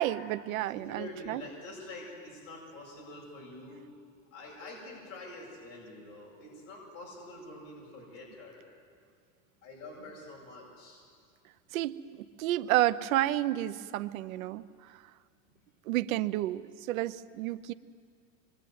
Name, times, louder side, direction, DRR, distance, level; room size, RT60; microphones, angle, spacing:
voice 1, 0.0-1.4 11.7-15.0 15.9-17.7, right 14 dB, 65° right, 12 dB, 1.0 m, -31 dB
voice 2, 0.7-3.9 4.3-8.6 9.6-11.0, left 2 dB, 35° left, -4 dB, 8.0 m, -46 dB
26.5 x 23.0 x 9.5 m, 2.2 s
supercardioid pair, 160°, 44 cm